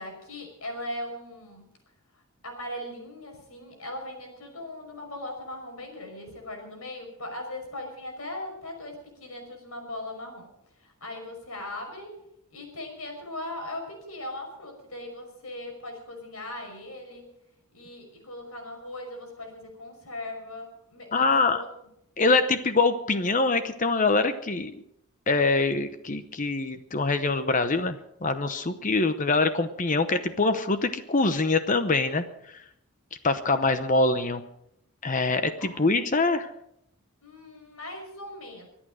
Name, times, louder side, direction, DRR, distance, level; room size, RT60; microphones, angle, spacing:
voice 1, 0.0-1.6 2.4-10.5 10.8-12.2 12.5-17.3 17.7-21.7 35.6-35.7 37.2-38.7, left 1 dB, 75° left, 3 dB, 5.8 m, -39 dB
voice 2, 21.1-21.6 22.2-24.8 25.3-32.6 33.2-34.4 35.0-36.5, left 3 dB, 35° left, 10 dB, 0.8 m, -24 dB
24.5 x 8.9 x 6.3 m, 0.78 s
head